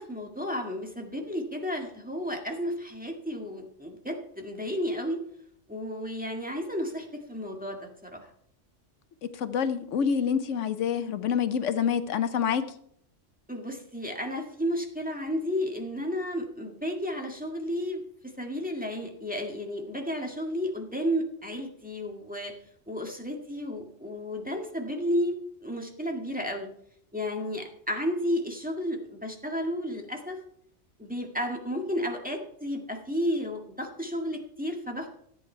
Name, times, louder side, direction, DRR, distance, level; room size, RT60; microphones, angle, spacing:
voice 1, 0.0-5.2 5.7-8.3 13.5-18.0 18.4-22.5 22.9-25.3 25.6-26.7 27.1-30.4 31.0-35.1, equal, 5° right, 1 dB, 1.8 m, -32 dB
voice 2, 9.3-12.7, left 7 dB, 80° left, 11 dB, 1.1 m, -27 dB
14.5 x 8.7 x 4.5 m, 0.67 s
omnidirectional pair, 1.3 m